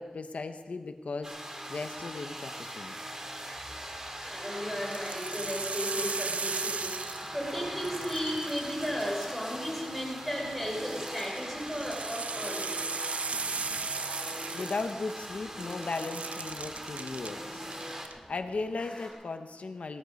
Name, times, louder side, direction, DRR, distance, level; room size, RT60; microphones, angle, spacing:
voice 1, 0.0-1.4 1.7-3.0 13.9-14.0 14.5-17.7 18.3-20.0, left 3 dB, 90° left, 8 dB, 0.8 m, -36 dB
sound 1, 1.2-18.1, right 1 dB, 25° right, 2.0 m, -41 dB
sound 2, 1.6-2.0 3.5-19.1, left 1 dB, 20° left, 6.3 m, -46 dB
sound 3, 3.9-4.3 4.8-7.5 7.8-9.6 10.8-15.3 15.6-17.3 17.7-18.1, right 4 dB, 80° right, 0.4 m, -37 dB
voice 2, 4.3-12.7, equal, ahead, -2 dB, 5.4 m, -35 dB
18.0 x 13.0 x 5.2 m, 1.5 s
wide cardioid pair, 90°, 2 cm